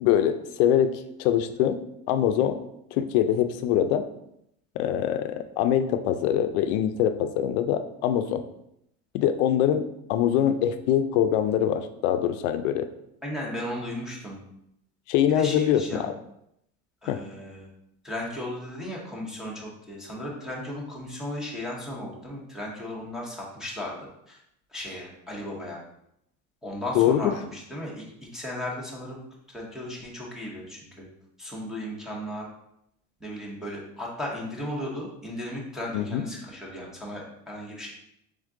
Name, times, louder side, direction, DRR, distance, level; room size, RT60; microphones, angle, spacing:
voice 1, 0.0-1.8 2.1-2.6 2.9-4.0 4.8-8.4 9.1-12.9 15.1-16.2 17.1-17.2 26.9-27.3 35.9-36.2, left 10 dB, 90° left, 9 dB, 0.5 m, -24 dB
voice 2, 13.2-14.4 15.3-16.1 17.0-17.7 18.0-23.9 24.3-24.4 24.7-25.8 26.6-28.0 28.3-29.2 29.5-31.1 31.4-32.4 33.2-37.9, left 1 dB, ahead, -3 dB, 0.7 m, -35 dB
3.5 x 3.5 x 3.7 m, 0.77 s
cardioid pair, 165°, 34 cm